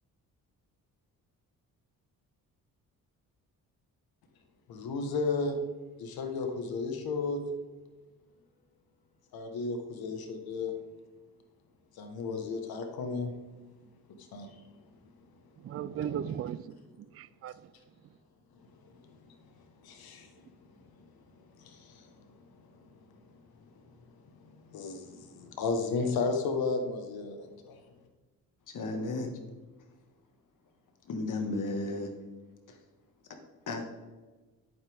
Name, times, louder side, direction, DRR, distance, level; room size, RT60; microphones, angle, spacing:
voice 1, 4.7-5.6 6.0-7.4 9.3-10.7 11.9-13.3 14.3-14.6 19.8-20.3 21.6-22.1 24.4-27.8, left 4 dB, 90° left, 1.5 m, -33 dB
voice 2, 15.6-17.7 18.0-18.1, right 9 dB, 40° right, 0.4 m, -37 dB
voice 3, 28.7-29.4 31.1-32.1 32.7-32.8 33.7-33.8, left 2 dB, 60° left, 1.9 m, -34 dB
11.0 x 8.8 x 3.6 m
cardioid pair, 115°, 36 cm